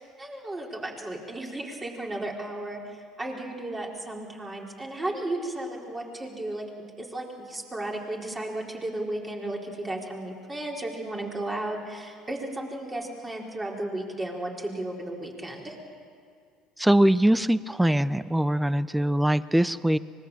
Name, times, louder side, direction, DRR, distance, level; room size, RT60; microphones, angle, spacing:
voice 1, 0.0-15.8, right 1 dB, 20° right, -1 dB, 4.4 m, -34 dB
voice 2, 16.8-20.0, right 1 dB, 5° right, 17 dB, 0.7 m, -22 dB
24.5 x 20.5 x 7.4 m, 2.2 s
hypercardioid pair, 70°, 0 cm